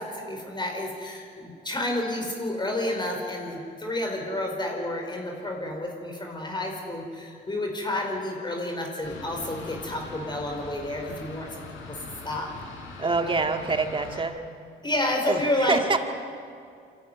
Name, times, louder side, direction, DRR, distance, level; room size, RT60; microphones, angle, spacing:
voice 1, 0.0-11.6 11.9-12.0 12.2-12.5 14.8-15.8, left 1 dB, 20° left, 1 dB, 4.6 m, -30 dB
Fixed-wing aircraft airplane, 9.0-14.2, left 3 dB, 80° left, 4.4 m, -42 dB
voice 2, 13.0-14.4 15.3-16.0, right 4 dB, 25° right, 5 dB, 1.9 m, -25 dB
24.5 x 14.0 x 9.8 m, 2.4 s
cardioid pair, 90°, 20 cm